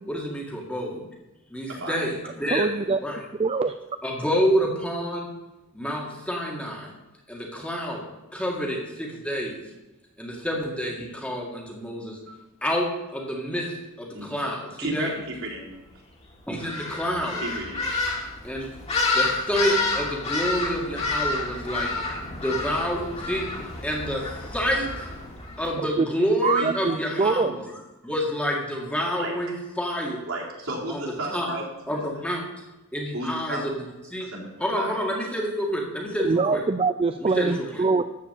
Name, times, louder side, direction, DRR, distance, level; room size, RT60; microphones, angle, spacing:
voice 1, 0.1-1.0 1.5-2.7 3.0-3.2 4.0-5.3 5.7-6.9 7.3-8.0 8.3-9.6 10.2-12.2 12.6-15.1 16.5-17.4 18.4-18.7 19.1-21.9 22.4-25.1 25.6-27.7 28.0-30.2 30.9-31.1 31.3-31.5 31.9-32.4 32.9-33.7 34.1-34.3 34.6-36.6 37.2-37.8, equal, 5° left, -1 dB, 2.0 m, -28 dB
voice 2, 1.7-2.0 14.1-14.3 14.8-15.7 17.4-17.8 29.2-29.3 30.3-32.0 33.1-33.6 34.2-34.5 34.8-35.0, right 1 dB, 75° right, -4 dB, 3.9 m, -33 dB
voice 3, 2.5-3.0 3.4-3.8 26.0-26.1 26.4-27.5 36.2-38.0, right 4 dB, 25° right, 9 dB, 0.3 m, -23 dB
sound 1, 16.6-25.7, left 3 dB, 30° left, 2.5 m, -29 dB
13.5 x 4.9 x 8.3 m, 1.0 s
head